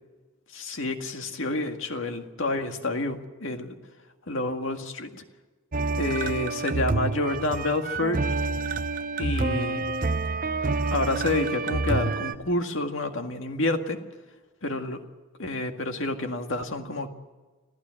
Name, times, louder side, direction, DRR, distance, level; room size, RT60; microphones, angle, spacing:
voice 1, 0.5-3.8 4.3-5.2 6.0-8.2 9.2-9.8 10.9-14.0 14.6-15.0 15.4-17.1, left 2 dB, 60° left, 5 dB, 2.0 m, -29 dB
sound 1, 5.7-12.3, right 3 dB, 40° right, 0.8 m, -28 dB
26.0 x 15.0 x 7.7 m, 1.3 s
head